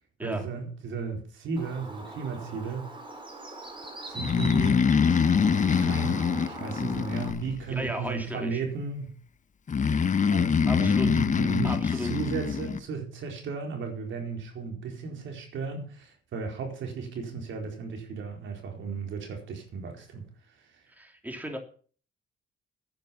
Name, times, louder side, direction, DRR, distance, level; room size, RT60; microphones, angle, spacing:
voice 1, 0.2-3.0 4.0-4.8 5.6-9.2 10.3-20.9, right 5 dB, 75° right, 4.5 m, -35 dB
Bird, 1.6-7.3, right 2 dB, 25° right, 4.2 m, -42 dB
Breathing, 4.2-7.9 9.7-12.8, left 6 dB, 40° left, 1.2 m, -24 dB
voice 2, 7.7-8.6 10.7-11.1 11.6-12.1 20.9-21.6, right 1 dB, 10° right, 3.0 m, -35 dB
10.5 x 10.0 x 7.2 m
cardioid pair, 90°, 20 cm